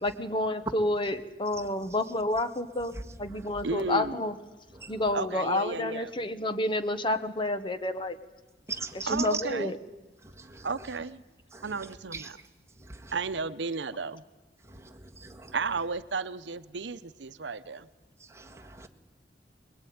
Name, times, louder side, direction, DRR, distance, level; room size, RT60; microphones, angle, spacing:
voice 1, 0.0-2.9 3.2-4.3 4.9-8.2 9.2-9.8, left 2 dB, 30° left, 1.1 m, -29 dB
voice 2, 3.6-4.2 5.1-6.1 9.1-9.7 10.6-11.2 11.6-12.4 13.1-14.2 15.5-17.9, right 4 dB, 90° right, 0.8 m, -33 dB
voice 3, 8.7-9.3 10.4-10.7 11.5-11.6 12.1-12.3 12.9-13.1 14.8-15.5 18.3-18.9, right 2 dB, 15° right, 1.6 m, -38 dB
22.5 x 21.5 x 9.4 m
head